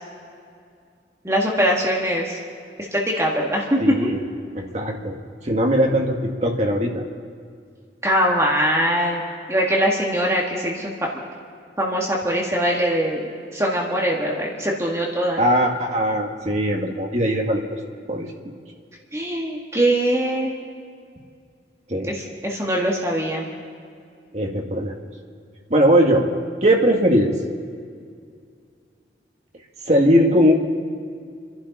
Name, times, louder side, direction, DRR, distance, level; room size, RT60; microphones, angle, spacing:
voice 1, 1.2-2.4 2.9-4.0 8.0-9.2 9.5-11.2 11.8-15.4 19.1-20.5 22.0-23.5, equal, 15° right, -3 dB, 1.8 m, -22 dB
voice 2, 3.8-4.2 4.5-5.2 5.5-7.0 15.4-17.6 18.1-18.3 21.9-22.1 24.3-24.9 25.7-26.2 26.6-27.3 29.9-30.5, equal, 40° right, 1 dB, 1.8 m, -19 dB
29.0 x 11.5 x 4.2 m, 2.2 s
head